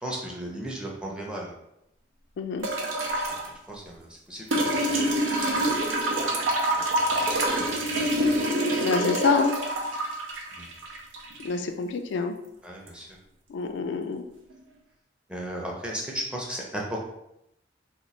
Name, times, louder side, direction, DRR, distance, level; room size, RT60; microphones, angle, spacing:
voice 1, 0.0-1.5 3.3-3.4 3.7-5.3 6.1-6.4 6.7-6.8 7.1-7.6 7.9-8.3 10.5-10.7 12.6-13.1 15.3-17.0, right 1 dB, 5° right, -2 dB, 0.5 m, -36 dB
voice 2, 2.4-2.7 8.8-9.6 11.4-12.4 13.5-14.2, left 4 dB, 70° left, 6 dB, 0.3 m, -26 dB
sound 1, 2.6-3.5 4.5-11.5 12.9-13.0, right 1 dB, 90° right, 0.7 m, -26 dB
2.9 x 2.4 x 4.0 m, 0.84 s
head